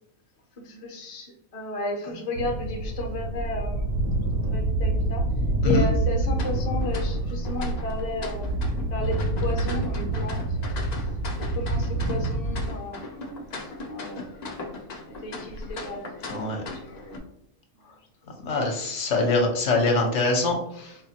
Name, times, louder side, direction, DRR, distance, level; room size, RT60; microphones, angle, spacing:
voice 1, 0.6-3.9 4.3-5.3 5.6-10.4 10.9-11.0 11.6-14.5 15.1-17.2 20.7-21.0, left 2 dB, 35° left, 1 dB, 0.6 m, -34 dB
sound 1, 2.4-12.7, right 2 dB, 70° right, 1.1 m, -27 dB
sound 2, 6.3-17.2, left 3 dB, 85° left, 0.3 m, -39 dB
voice 2, 16.3-16.6 18.4-20.6, left 2 dB, 65° left, 1 dB, 0.9 m, -23 dB
4.2 x 2.4 x 2.8 m, 0.77 s
omnidirectional pair, 1.5 m